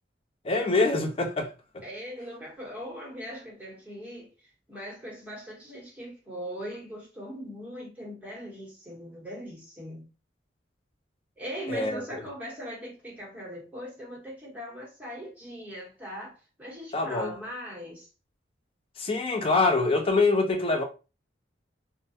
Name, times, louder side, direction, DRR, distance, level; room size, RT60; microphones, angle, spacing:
voice 1, 0.4-1.5 11.7-12.0 16.9-17.3 19.0-20.8, left 3 dB, 30° left, 0.4 m, -24 dB
voice 2, 1.8-4.3 4.7-10.1 11.4-18.1, equal, 10° right, 0.9 m, -40 dB
2.3 x 2.1 x 2.6 m
head